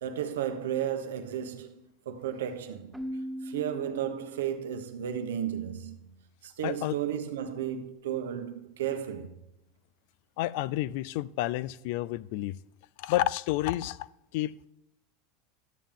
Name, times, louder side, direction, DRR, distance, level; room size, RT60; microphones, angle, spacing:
voice 1, 0.0-2.9 3.4-6.1 6.4-9.4, right 9 dB, 90° right, 1.0 m, -33 dB
Keyboard (musical), 2.9-4.8, equal, 5° right, 0.4 m, -39 dB
voice 2, 6.6-6.9 10.4-12.6 13.0-14.1 14.3-14.7, left 15 dB, 65° left, 0.3 m, -30 dB
12.0 x 7.2 x 3.7 m
supercardioid pair, 115°, 0 cm